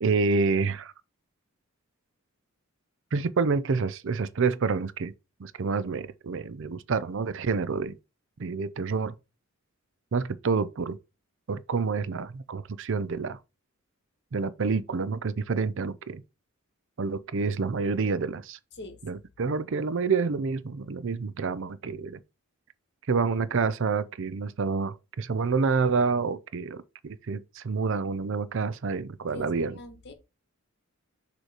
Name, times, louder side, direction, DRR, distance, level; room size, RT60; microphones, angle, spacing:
voice 1, 0.0-0.9 3.1-5.1 5.4-8.0 8.4-9.1 10.1-11.0 11.5-13.4 14.3-16.2 17.0-18.6 19.0-22.2 23.1-29.7, right 4 dB, 60° right, 0.5 m, -28 dB
voice 2, 29.3-30.1, left 2 dB, 50° left, 1.3 m, -42 dB
6.5 x 3.1 x 4.8 m
head